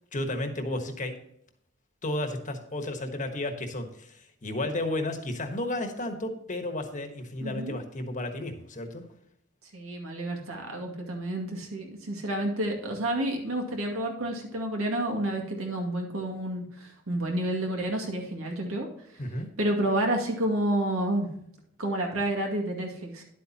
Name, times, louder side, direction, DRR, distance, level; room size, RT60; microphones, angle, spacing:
voice 1, 0.1-1.1 2.0-9.0 19.2-19.5, left 1 dB, 40° left, 6 dB, 1.3 m, -33 dB
voice 2, 7.4-7.8 9.7-18.9 19.6-21.3 21.8-23.2, right 1 dB, 85° right, 1 dB, 2.2 m, -30 dB
10.5 x 8.4 x 2.9 m, 0.74 s
head